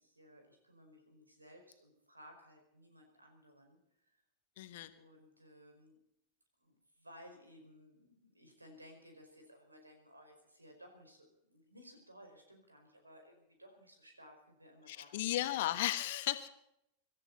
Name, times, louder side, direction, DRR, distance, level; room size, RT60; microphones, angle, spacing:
voice 1, 0.0-3.8 4.9-6.1 6.6-15.5, equal, 80° right, 4 dB, 5.0 m, -59 dB
voice 2, 4.6-4.9 14.9-16.5, left 14 dB, 55° left, 11 dB, 1.4 m, -35 dB
25.5 x 14.0 x 4.1 m, 0.79 s
figure-of-eight pair, 90°, 0 cm